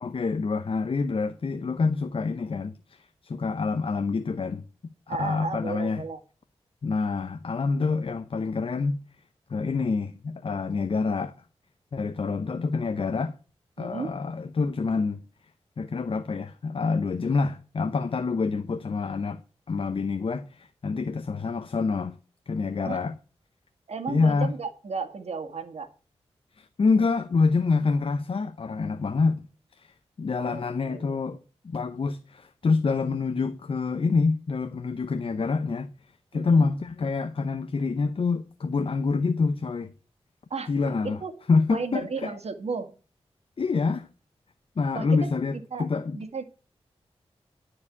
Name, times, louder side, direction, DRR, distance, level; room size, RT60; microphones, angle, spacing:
voice 1, 0.0-4.6 5.1-6.0 6.8-9.0 9.5-11.3 11.9-13.4 13.8-15.2 15.8-19.4 19.7-22.2 22.5-23.1 24.1-24.5 26.6-29.4 29.7-31.4 31.6-35.9 36.3-39.9 40.7-41.2 41.5-42.4 43.6-44.1 44.8-46.2, left 4 dB, 55° left, 0.7 m, -26 dB
voice 2, 5.1-6.2 13.8-14.1 22.8-23.0 23.9-25.9 30.3-31.4 36.3-36.7 40.5-41.3 41.7-42.9 44.9-45.9 46.1-46.4, right 4 dB, 70° right, 1.9 m, -34 dB
12.0 x 4.9 x 8.2 m
wide cardioid pair, 75°, 11 cm